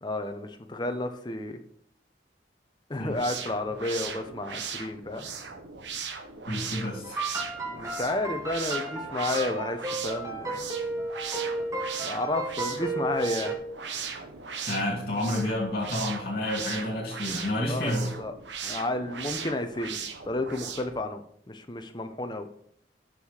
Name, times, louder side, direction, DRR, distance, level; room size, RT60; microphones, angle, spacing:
voice 1, 0.0-1.6 2.9-5.3 7.7-10.6 12.0-13.6 17.7-18.3 18.6-20.0 20.2-21.2 21.5-22.5, left 2 dB, 25° left, 7 dB, 0.6 m, -31 dB
sound 1, 3.0-21.0, right 6 dB, 85° right, 0.9 m, -38 dB
voice 2, 6.5-7.2 14.7-18.1, left 1 dB, 55° left, -2 dB, 2.2 m, -29 dB
sound 2, 7.0-13.6, right 2 dB, 20° right, 1.3 m, -33 dB
6.4 x 6.0 x 4.8 m, 0.64 s
head